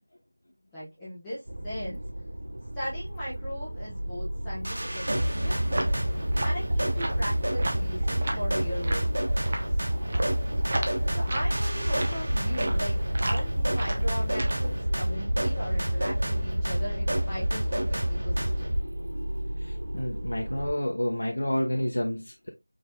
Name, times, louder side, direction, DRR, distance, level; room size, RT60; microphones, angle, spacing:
voice 1, 0.7-2.0 2.7-5.6 6.4-9.6 11.1-18.7, equal, 5° left, -12 dB, 1.2 m, -38 dB
sound 1, 1.5-20.7, right 1 dB, 75° right, 1.7 m, -35 dB
sound 2, 4.6-18.8, equal, 50° right, 1.4 m, -28 dB
sound 3, 5.2-14.8, right 2 dB, 30° right, 0.7 m, -36 dB
voice 2, 19.9-22.5, left 1 dB, 65° left, -1 dB, 1.1 m, -29 dB
4.9 x 4.0 x 2.3 m, 0.21 s
figure-of-eight pair, 175°, 0 cm